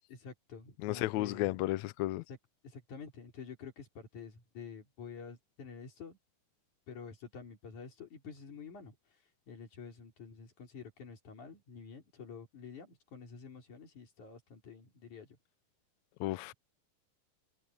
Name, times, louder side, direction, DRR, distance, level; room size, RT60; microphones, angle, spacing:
voice 1, 0.1-1.5 2.3-2.4 2.6-6.2 6.9-9.0 9.5-15.4, left 5 dB, 65° left, 5.4 m, -49 dB
voice 2, 0.8-2.2 16.2-16.5, left 18 dB, 80° left, 1.6 m, -33 dB
omnidirectional pair, 3.8 m